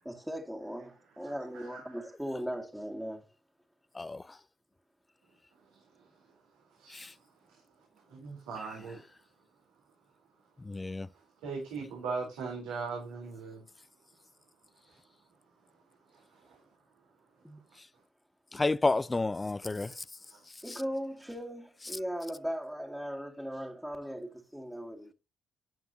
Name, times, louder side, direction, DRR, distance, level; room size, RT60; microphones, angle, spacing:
voice 1, 0.1-3.2 17.4-17.6 20.6-25.1, equal, 5° right, 2.1 m, -38 dB
voice 2, 1.2-2.0 6.8-7.1 8.1-9.0 11.4-13.6 16.1-16.6 20.3-20.4, right 4 dB, 75° right, 3.8 m, -40 dB
voice 3, 10.6-11.1 18.5-20.0 20.7-20.8, left 3 dB, 25° left, 0.7 m, -31 dB
12.0 x 9.3 x 2.9 m
hypercardioid pair, 45°, 0 cm